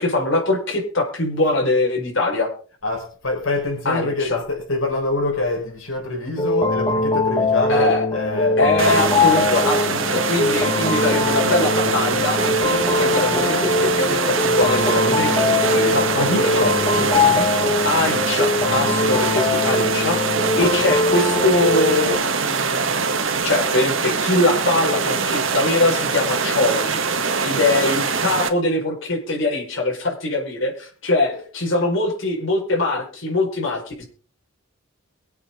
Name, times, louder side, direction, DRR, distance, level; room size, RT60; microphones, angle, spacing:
voice 1, 0.0-2.5 3.9-4.4 7.7-8.0 8.6-16.6 17.8-27.0 27.4-34.0, left 2 dB, 65° left, -1 dB, 5.2 m, -22 dB
voice 2, 2.8-8.6 15.9-17.8 31.3-31.4, left 2 dB, 85° left, 0 dB, 4.5 m, -25 dB
sound 1, 6.4-22.2, left 3 dB, 20° left, 1.2 m, -22 dB
sound 2, 8.8-28.5, right 5 dB, 70° right, 1.7 m, -23 dB
23.5 x 8.2 x 3.8 m, 0.41 s
head